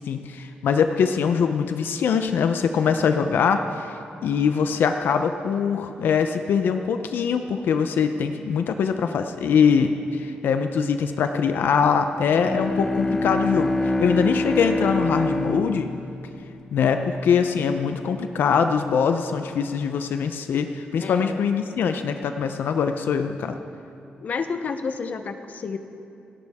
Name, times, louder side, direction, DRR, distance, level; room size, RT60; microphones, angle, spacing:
voice 1, 0.0-3.9 4.2-15.9 16.7-23.6, left 6 dB, 80° left, 7 dB, 0.7 m, -23 dB
Bowed string instrument, 12.3-17.2, left 1 dB, 15° left, 0.9 m, -26 dB
voice 2, 21.0-21.4 24.2-25.8, left 5 dB, 50° left, 8 dB, 0.8 m, -30 dB
29.0 x 11.0 x 3.6 m, 2.7 s
wide cardioid pair, 130°, 3 cm